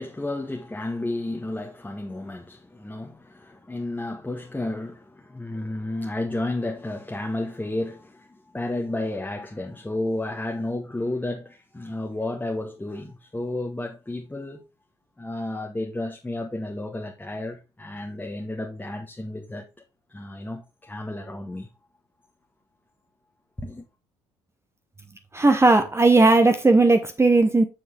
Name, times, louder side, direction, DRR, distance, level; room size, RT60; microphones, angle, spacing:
voice 1, 0.0-14.6 15.2-19.7 20.1-21.7 23.6-23.9, left 2 dB, 10° left, 1.4 m, -32 dB
voice 2, 25.3-27.6, right 3 dB, 15° right, 1.1 m, -17 dB
7.1 x 6.7 x 3.5 m
figure-of-eight pair, 55°, 16 cm